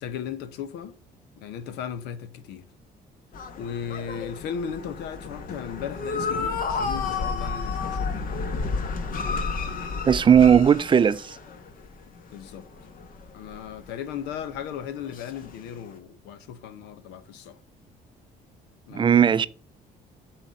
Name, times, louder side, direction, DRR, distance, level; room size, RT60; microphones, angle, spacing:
voice 1, 0.0-1.0 1.4-2.7 3.6-8.6 12.3-12.7 13.3-17.6 18.9-19.5, left 8 dB, 90° left, 0.9 m, -36 dB
sound 1, 3.3-11.9 12.1-14.6 15.0-15.7, left 4 dB, 55° left, 1.4 m, -31 dB
voice 2, 10.1-11.2 18.9-19.5, right 8 dB, 30° right, 0.4 m, -17 dB
7.8 x 4.3 x 6.3 m
cardioid pair, 110°, 17 cm